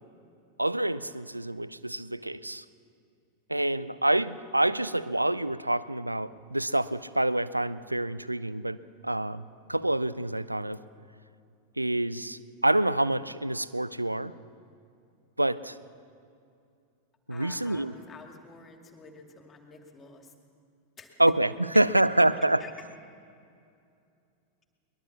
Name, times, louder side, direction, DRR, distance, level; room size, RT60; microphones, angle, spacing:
voice 1, 0.6-2.6 3.5-8.8 9.0-9.4 9.7-10.8 11.8-14.3 15.4-15.8 17.3-17.9 21.2-22.6, right 1 dB, 85° right, 17 dB, 0.6 m, -27 dB
voice 2, 17.3-20.3 21.0-21.1 22.6-22.7, left 4 dB, 20° left, 4 dB, 2.5 m, -49 dB
22.0 x 21.0 x 7.2 m, 2.5 s
figure-of-eight pair, 90°, 0 cm